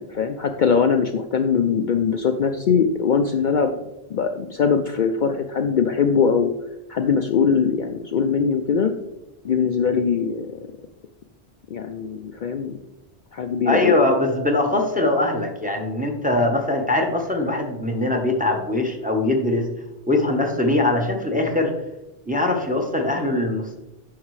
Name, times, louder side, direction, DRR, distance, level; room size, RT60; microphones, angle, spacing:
voice 1, 0.0-3.7 4.1-6.5 6.9-8.9 9.4-10.5 11.7-12.7 13.3-13.9, left 6 dB, 55° left, 5 dB, 0.6 m, -21 dB
voice 2, 13.7-19.7 20.1-21.7 22.3-23.8, left 2 dB, 10° right, 2 dB, 0.9 m, -22 dB
9.5 x 6.4 x 3.2 m, 0.91 s
omnidirectional pair, 1.1 m